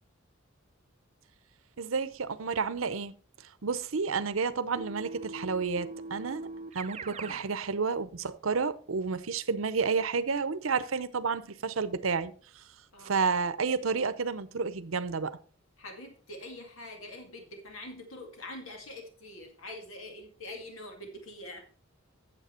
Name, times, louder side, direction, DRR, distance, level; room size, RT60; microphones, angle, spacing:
voice 1, 1.8-3.1 3.6-6.4 6.7-12.3 13.0-15.4, right 5 dB, 80° right, 0.7 m, -30 dB
Keyboard (musical), 4.8-7.5, right 3 dB, 30° right, 0.5 m, -42 dB
voice 2, 15.8-21.6, left 1 dB, 85° left, 2.1 m, -44 dB
9.3 x 7.6 x 4.4 m
head